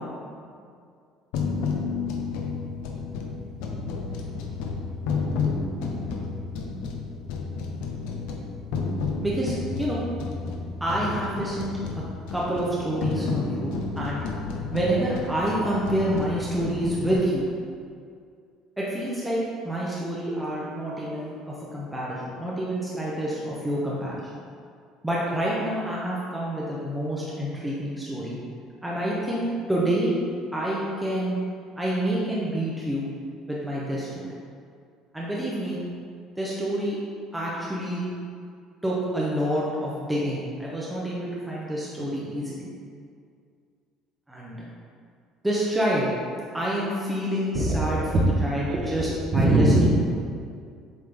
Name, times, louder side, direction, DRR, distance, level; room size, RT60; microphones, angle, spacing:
sound 1, 1.3-17.1, left 4 dB, 85° left, 0.7 m, -31 dB
voice 1, 9.2-10.0 10.8-11.8 12.3-14.2 14.7-17.5 18.8-24.3 25.0-28.4 28.8-30.1 30.5-31.4 31.7-33.1 33.5-34.3 35.1-35.8 36.4-37.0 37.3-38.0 38.8-42.7 44.3-44.7 45.4-46.1 46.5-48.0 48.4-49.9, right 1 dB, 5° right, -6 dB, 0.6 m, -28 dB
voice 2, 47.5-48.2 48.7-49.9, right 2 dB, 35° right, -2 dB, 1.0 m, -22 dB
7.7 x 3.7 x 3.3 m, 2.2 s
cardioid pair, 175°, 0 cm